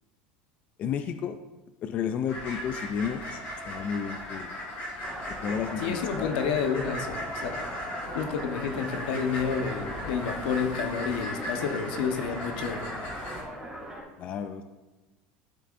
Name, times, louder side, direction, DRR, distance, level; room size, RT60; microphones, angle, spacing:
voice 1, 0.8-1.4 1.8-3.4 3.7-4.5 5.4-6.3 14.2-14.6, left 7 dB, 30° left, 8 dB, 0.4 m, -32 dB
sound 1, 2.3-13.4, left 1 dB, 45° left, 2.9 m, -37 dB
sound 2, 5.0-14.0, right 1 dB, 5° right, 2.6 m, -40 dB
voice 2, 5.8-7.6 8.1-12.9, left 6 dB, 80° left, 6 dB, 1.1 m, -30 dB
12.5 x 6.7 x 2.6 m, 1.1 s
cardioid pair, 170°, 5 cm